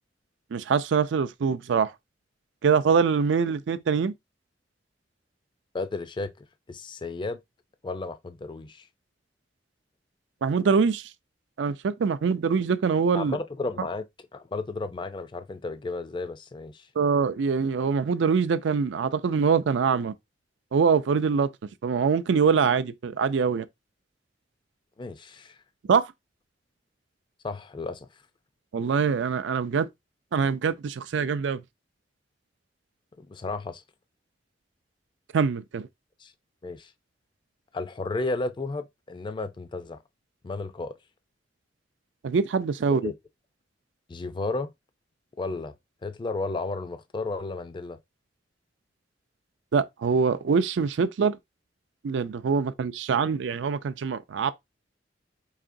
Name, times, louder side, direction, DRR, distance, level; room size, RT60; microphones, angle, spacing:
voice 1, 0.5-1.9 2.6-4.1 10.4-11.1 11.6-13.4 17.0-20.1 20.7-21.5 21.8-23.7 25.9-26.1 28.7-29.9 30.3-31.6 35.3-35.9 42.2-43.1 49.7-51.4 52.0-54.5, right 5 dB, 75° right, 0.4 m, -24 dB
voice 2, 5.7-7.4 7.8-8.9 13.1-14.0 14.3-16.9 25.0-25.6 27.4-28.1 33.2-33.8 36.2-36.3 36.6-36.9 37.7-40.0 40.4-40.9 42.9-43.1 44.1-44.7 45.4-45.7 46.0-48.0, left 3 dB, 25° left, 0.4 m, -33 dB
4.9 x 2.8 x 2.6 m
head